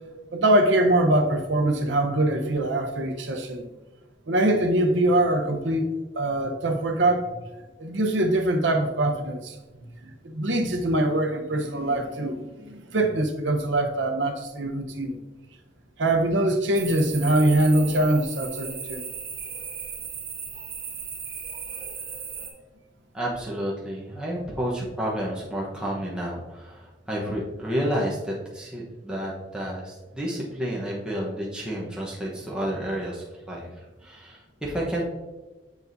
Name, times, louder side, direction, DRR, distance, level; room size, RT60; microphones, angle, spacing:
voice 1, 0.3-3.7 4.3-7.3 7.8-9.6 10.0-15.2 16.0-19.0, right 1 dB, 90° right, 4 dB, 0.9 m, -23 dB
sound 1, 16.7-22.5, right 7 dB, 55° right, 1.5 m, -36 dB
voice 2, 23.1-33.7 34.0-35.1, equal, 5° right, -5 dB, 1.1 m, -30 dB
7.0 x 7.0 x 2.7 m, 1.2 s
head